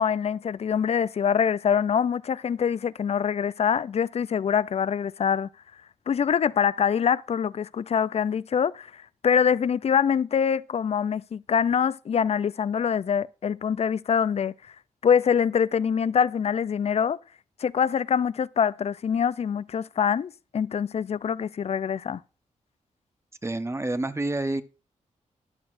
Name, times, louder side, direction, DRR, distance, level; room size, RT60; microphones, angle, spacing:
voice 1, 0.0-5.5 6.1-14.5 15.0-17.2 17.6-22.2, left 7 dB, 50° left, 0.4 m, -24 dB
voice 2, 23.4-24.6, right 2 dB, 20° right, 0.8 m, -28 dB
13.5 x 10.5 x 2.6 m
cardioid pair, 80°, 13 cm